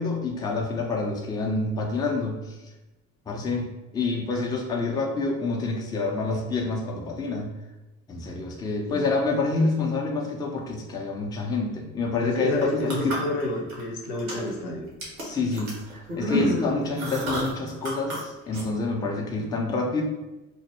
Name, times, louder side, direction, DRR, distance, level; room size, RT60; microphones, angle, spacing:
voice 1, 0.0-2.6 3.3-3.7 3.9-7.5 8.1-13.2 15.2-15.8 16.2-20.0, left 3 dB, 10° left, 0 dB, 0.4 m, -27 dB
voice 2, 12.2-14.9 16.3-16.7, left 2 dB, 60° left, 0 dB, 0.7 m, -30 dB
sound 1, 12.5-13.8 14.1-14.6 15.0-18.2 18.5-18.6, equal, 90° right, 0.6 m, -30 dB
2.1 x 2.0 x 3.0 m, 1.0 s
figure-of-eight pair, 50°, 40 cm